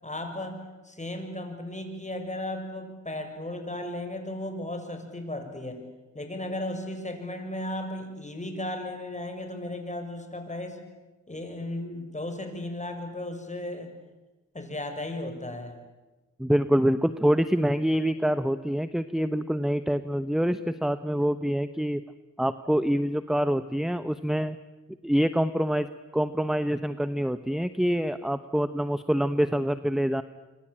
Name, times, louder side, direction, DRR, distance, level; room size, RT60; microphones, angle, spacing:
voice 1, 0.0-5.8 6.1-10.8 11.3-13.9 14.5-15.8, left 1 dB, 25° left, 6 dB, 7.0 m, -35 dB
voice 2, 16.4-22.0 22.4-24.6 25.0-25.9 26.1-30.2, equal, ahead, 13 dB, 1.0 m, -26 dB
26.5 x 25.0 x 8.9 m, 1.1 s
cardioid pair, 55°, 30 cm